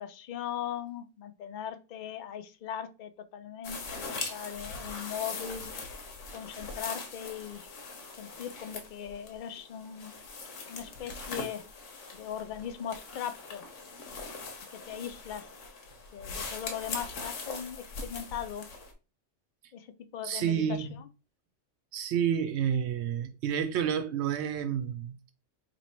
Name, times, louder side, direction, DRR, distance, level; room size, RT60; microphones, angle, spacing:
voice 1, 0.0-5.7 6.3-7.8 8.2-10.1 10.7-11.6 12.1-13.7 14.7-15.5 16.1-18.7 19.7-19.9 20.1-20.9, left 9 dB, 60° left, 0.5 m, -39 dB
sound 1, 3.6-18.9, left 4 dB, 90° left, 1.2 m, -41 dB
voice 2, 20.2-21.0 21.9-25.2, right 8 dB, 70° right, 0.8 m, -30 dB
3.0 x 2.8 x 4.3 m
omnidirectional pair, 1.2 m